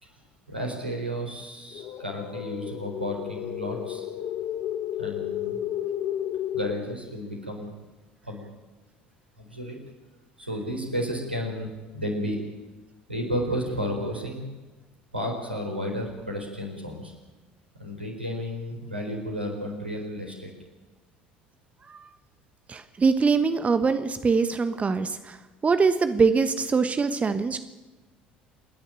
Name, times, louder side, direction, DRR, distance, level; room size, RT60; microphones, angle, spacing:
voice 1, 0.5-4.1 5.0-5.6 6.5-7.7 8.2-8.5 9.4-9.8 10.4-12.4 13.1-14.4 15.1-17.1 17.7-20.5, equal, 90° right, 2 dB, 4.1 m, -32 dB
sound 1, 1.7-6.7, left 11 dB, 50° left, 1.3 m, -32 dB
voice 2, 22.7-25.4 25.6-27.6, right 5 dB, 25° right, 11 dB, 1.2 m, -23 dB
29.0 x 10.5 x 8.9 m, 1.2 s
figure-of-eight pair, 60°, 5 cm